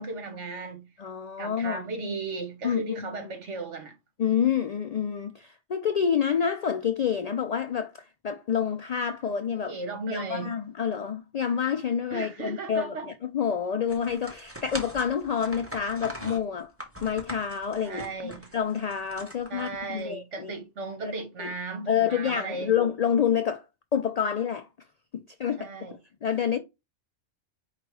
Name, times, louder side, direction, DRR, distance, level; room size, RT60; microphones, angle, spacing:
voice 1, 0.0-0.9 1.4-3.9 9.7-10.6 12.1-13.1 17.8-18.5 19.5-22.7 25.6-25.9, right 3 dB, 75° right, 1.6 m, -36 dB
voice 2, 1.0-1.9 2.6-3.3 4.2-9.7 10.1-16.7 17.0-20.5 21.0-21.1 21.4-21.5 21.9-23.6 23.9-24.7 25.1-26.6, left 7 dB, 80° left, 0.3 m, -28 dB
sound 1, 13.9-20.0, equal, 10° right, 1.1 m, -41 dB
4.9 x 2.3 x 4.7 m
omnidirectional pair, 1.2 m